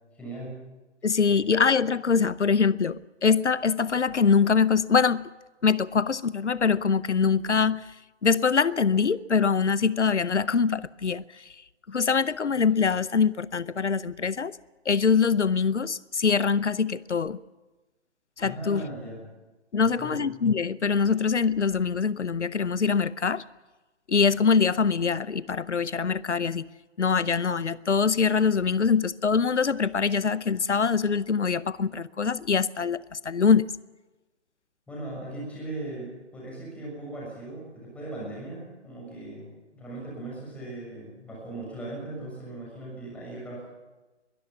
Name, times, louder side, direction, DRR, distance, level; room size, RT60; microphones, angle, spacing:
voice 1, 0.1-0.6 1.2-1.4 18.4-19.3 19.7-20.2 34.9-43.6, right 2 dB, 5° left, 6.7 m, -38 dB
voice 2, 1.0-5.2 5.6-7.9 8.2-11.6 11.9-14.6 14.9-17.4 18.4-18.9 19.7-23.4 24.1-26.7 27.0-33.7, left 5 dB, 70° left, 0.7 m, -24 dB
22.5 x 13.5 x 9.6 m
figure-of-eight pair, 140°, 36 cm